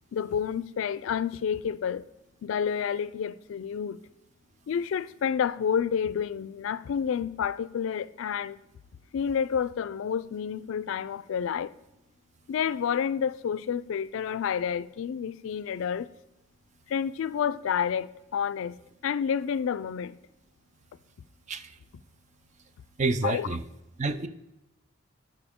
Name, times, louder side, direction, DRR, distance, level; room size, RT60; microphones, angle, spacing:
voice 1, 0.1-2.0 2.4-4.0 4.7-8.6 9.1-11.7 12.5-16.1 16.9-18.8 19.0-20.2 23.2-23.5, left 7 dB, 75° left, 0.3 m, -29 dB
voice 2, 23.0-23.6 24.0-24.3, right 3 dB, 35° right, 0.4 m, -28 dB
11.5 x 4.4 x 3.5 m
head